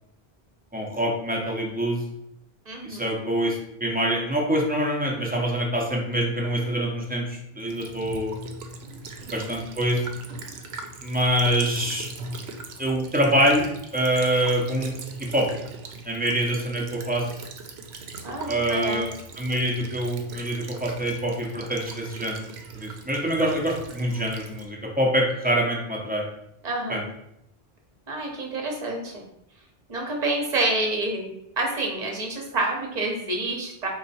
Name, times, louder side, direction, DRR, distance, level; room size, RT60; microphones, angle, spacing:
voice 1, 0.7-2.0 2.8-8.4 9.3-10.0 11.0-12.1 12.8-14.9 15.2-15.5 16.1-17.3 18.5-22.4 22.7-26.3 26.9-27.1, equal, 10° right, -2 dB, 0.6 m, -25 dB
voice 2, 2.7-3.2 9.2-9.5 18.2-19.1 26.6-27.1 28.1-29.2 29.9-31.3 31.6-33.9, right 2 dB, 45° right, 0 dB, 1.0 m, -28 dB
Child speech kid speaking / Bird vocalization bird call bird song / Stream, 7.7-24.7, right 3 dB, 80° right, 0.8 m, -40 dB
4.2 x 2.3 x 4.1 m, 0.80 s
omnidirectional pair, 1.1 m